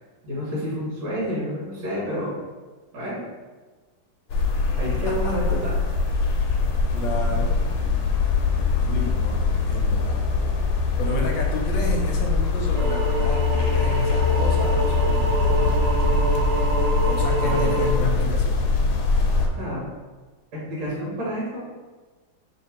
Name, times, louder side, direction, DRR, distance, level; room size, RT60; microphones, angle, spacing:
voice 1, 0.2-2.4 2.9-3.2 4.7-5.7 17.2-17.8 19.5-19.8 20.5-21.7, equal, 70° right, -6 dB, 1.7 m, -29 dB
sound 1, 4.3-19.5, left 3 dB, 90° left, 1.4 m, -22 dB
voice 2, 6.9-7.6 8.8-10.2 11.0-15.5 17.0-18.6, left 2 dB, 75° left, 0 dB, 1.3 m, -31 dB
sound 2, 12.8-17.9, right 1 dB, 90° right, 1.4 m, -27 dB
3.4 x 3.0 x 4.2 m, 1.3 s
omnidirectional pair, 2.2 m